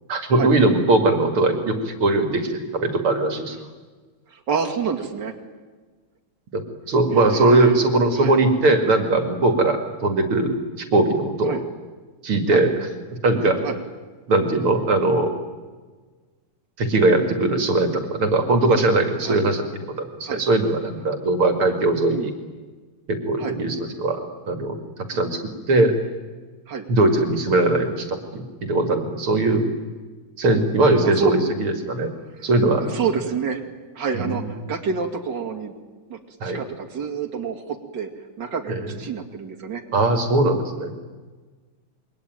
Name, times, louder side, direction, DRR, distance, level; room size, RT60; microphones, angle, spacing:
voice 1, 0.1-3.6 6.5-11.6 12.2-12.7 13.2-13.6 14.3-15.3 16.8-19.6 20.0-22.3 23.1-24.2 24.5-24.8 25.1-25.4 25.7-25.9 26.9-29.6 30.4-32.1 32.4-32.9 34.1-34.4 36.4-36.6 38.7-38.9 39.9-40.9, right 2 dB, 75° right, 6 dB, 3.0 m, -20 dB
voice 2, 4.3-5.3 7.1-7.8 8.2-8.3 11.5-11.6 12.5-12.6 13.6-13.8 19.2-19.4 20.2-20.4 22.1-22.3 23.4-23.6 26.7-26.9 31.0-31.3 32.3-32.5 32.8-33.6 33.9-35.7 36.1-38.1 38.4-39.8, right 6 dB, 55° right, 2 dB, 3.1 m, -28 dB
28.0 x 22.5 x 9.3 m, 1.4 s
omnidirectional pair, 2.4 m